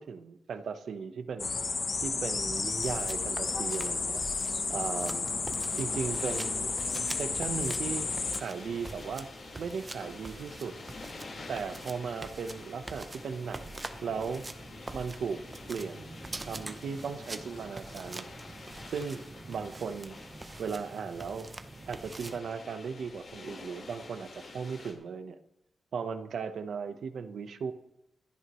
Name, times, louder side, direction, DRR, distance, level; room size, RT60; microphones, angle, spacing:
voice 1, 0.0-1.5 2.0-4.2 4.7-5.3 5.7-6.7 7.1-9.3 9.6-10.8 11.5-13.7 14.0-14.4 14.9-15.4 15.7-18.3 18.9-19.2 19.5-20.2 20.6-21.5 21.9-25.4 25.9-27.7, right 6 dB, 75° right, 9 dB, 1.0 m, -37 dB
sound 1, 1.4-8.4, left 4 dB, 45° left, 0.9 m, -32 dB
sound 2, 2.5-22.4, right 2 dB, 25° right, 0.8 m, -45 dB
sound 3, 5.5-24.9, left 3 dB, 65° left, 4.4 m, -48 dB
25.0 x 9.8 x 3.2 m, 0.87 s
cardioid pair, 105°, 0 cm